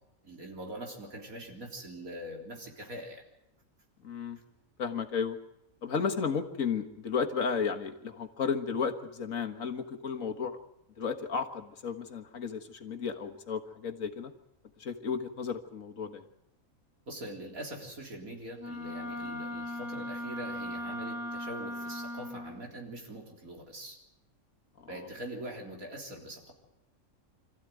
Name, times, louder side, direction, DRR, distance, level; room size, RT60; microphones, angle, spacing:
voice 1, 0.2-3.2 17.1-24.0 24.9-26.5, right 1 dB, 80° right, 1 dB, 4.3 m, -43 dB
voice 2, 4.0-4.4 4.8-5.4 5.8-10.6 11.0-14.3 14.8-16.2, left 6 dB, 70° left, 5 dB, 1.9 m, -33 dB
Wind instrument woodwind instrument, 18.6-22.6, left 1 dB, 15° right, 2.7 m, -38 dB
26.5 x 14.5 x 9.3 m, 0.88 s
omnidirectional pair, 1.4 m